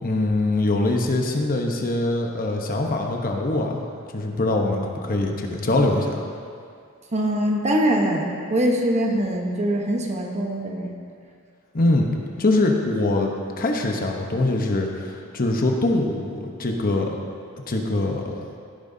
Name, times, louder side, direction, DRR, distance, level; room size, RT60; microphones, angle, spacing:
voice 1, 0.0-3.8 4.1-6.2 11.7-12.1 12.4-17.1 17.7-18.5, left 2 dB, 45° left, 2 dB, 0.9 m, -23 dB
voice 2, 7.1-10.9, right 1 dB, 35° right, 1 dB, 1.0 m, -23 dB
16.0 x 8.8 x 2.7 m, 2.3 s
head